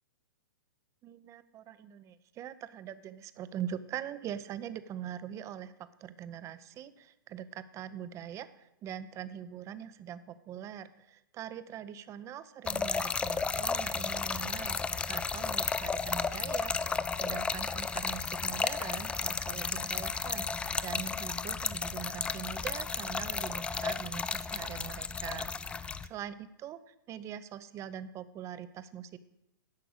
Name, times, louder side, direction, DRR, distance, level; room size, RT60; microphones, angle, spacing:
voice 1, 1.0-14.8 15.1-29.2, right 9 dB, 25° right, 14 dB, 0.7 m, -43 dB
Trickle dribble / Fill (with liquid), 12.7-26.1, left 5 dB, 10° left, 0.3 m, -33 dB
10.5 x 6.6 x 7.9 m, 0.86 s
hypercardioid pair, 120°, 12 cm